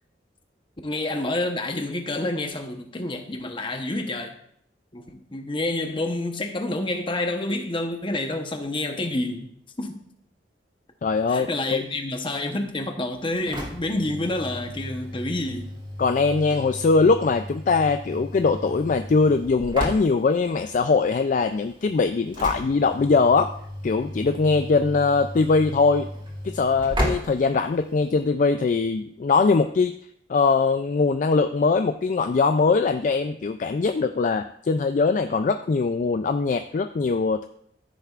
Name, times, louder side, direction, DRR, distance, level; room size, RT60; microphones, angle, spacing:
voice 1, 0.8-4.4 4.9-9.5 9.8-10.0 11.3-15.7, left 2 dB, 30° left, 1.0 m, -28 dB
voice 2, 11.0-11.8 16.0-23.5 23.8-26.1 26.5-29.9 30.3-37.5, left 4 dB, 45° left, 0.4 m, -21 dB
Engine / Slam, 13.1-28.3, equal, 30° right, 2.3 m, -35 dB
14.5 x 6.7 x 2.5 m
head